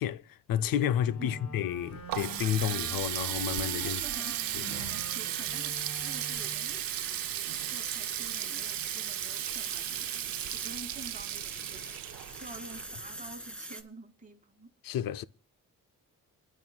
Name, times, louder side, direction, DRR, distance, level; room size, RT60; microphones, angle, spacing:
voice 1, 0.0-4.0 4.5-4.6 14.8-15.2, left 10 dB, 75° left, 0.6 m, -31 dB
Wind instrument woodwind instrument, 1.0-6.8, equal, 55° left, 6.4 m, -46 dB
voice 2, 1.2-1.5 3.8-10.1 10.5-14.7, right 2 dB, 25° right, 2.3 m, -49 dB
Water tap faucet, 1.6-13.3, right 14 dB, 80° right, 0.6 m, -35 dB
sound 1, 3.2-13.8, right 1 dB, 5° left, 2.0 m, -44 dB
28.5 x 11.0 x 2.3 m
cardioid pair, 115°, 34 cm